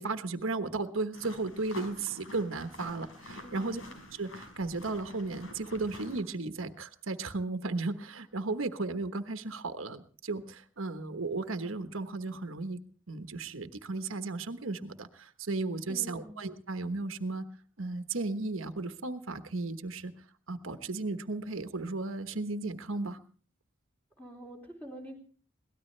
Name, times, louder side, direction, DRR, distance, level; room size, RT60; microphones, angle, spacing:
voice 1, 0.0-3.8 4.2-12.8 13.1-17.4 17.8-20.1 20.5-23.2, right 3 dB, 80° right, 9 dB, 1.2 m, -35 dB
sound 1, 1.1-6.2, left 1 dB, 90° left, 4.7 m, -47 dB
voice 2, 3.4-4.0 15.9-16.3 24.2-25.1, equal, 10° left, 1 dB, 3.8 m, -46 dB
23.0 x 18.0 x 3.3 m, 0.42 s
head